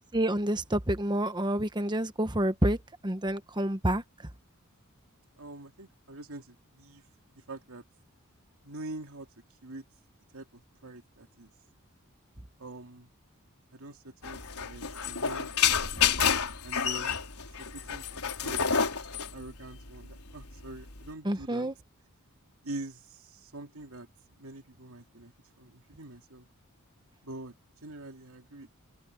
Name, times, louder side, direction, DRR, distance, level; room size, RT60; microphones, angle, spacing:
voice 1, 0.1-2.8 3.0-4.0 21.2-21.7, right 1 dB, 20° right, 1.2 m, -28 dB
voice 2, 5.4-7.0 7.5-7.8 8.6-9.3 9.6-9.8 10.3-11.5 12.6-13.1 13.7-15.9 16.6-17.2 17.6-21.7 22.6-24.1 24.4-25.3 25.6-26.5 27.2-27.5 27.8-28.7, right 2 dB, 75° right, 2.6 m, -45 dB
sound 1, 14.2-21.1, left 7 dB, 90° left, 4.2 m, -29 dB
head